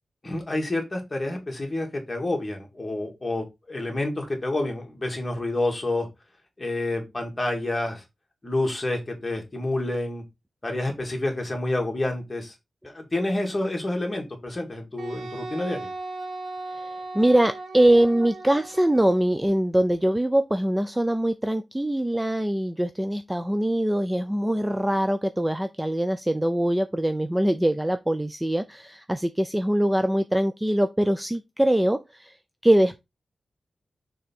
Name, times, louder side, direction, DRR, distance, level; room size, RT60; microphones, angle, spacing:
voice 1, 0.2-6.1 6.6-8.0 8.4-10.2 10.6-12.5 12.8-15.9, left 2 dB, 20° left, 1.9 m, -28 dB
Wind instrument woodwind instrument, 15.0-19.3, right 2 dB, 60° right, 1.6 m, -37 dB
voice 2, 17.1-32.3 32.6-33.0, right 1 dB, 10° right, 0.4 m, -23 dB
6.5 x 3.5 x 4.2 m
wide cardioid pair, 140°, 0 cm